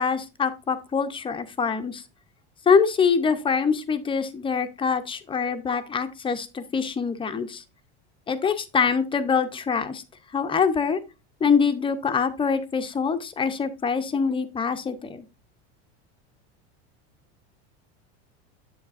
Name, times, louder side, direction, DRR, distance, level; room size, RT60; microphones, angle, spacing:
voice 1, 0.0-2.0 2.7-7.6 8.3-10.0 10.3-11.0 11.4-15.2, left 6 dB, 15° left, 9 dB, 0.5 m, -24 dB
7.7 x 7.2 x 2.4 m, 0.28 s
supercardioid pair, 130°, 35 cm